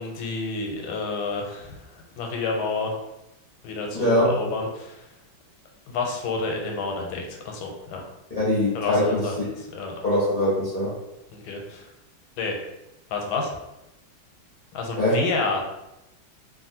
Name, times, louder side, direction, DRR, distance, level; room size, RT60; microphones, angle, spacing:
voice 1, 0.0-2.9 3.6-5.0 5.9-8.0 8.7-9.9 11.3-11.9 12.4-12.6 13.1-13.6 14.7-15.6, left 3 dB, 85° left, 1 dB, 1.4 m, -30 dB
voice 2, 3.9-4.3 8.3-9.2 10.0-10.9 15.0-15.2, left 1 dB, 50° left, -9 dB, 0.6 m, -22 dB
3.1 x 2.5 x 2.7 m, 0.92 s
omnidirectional pair, 2.1 m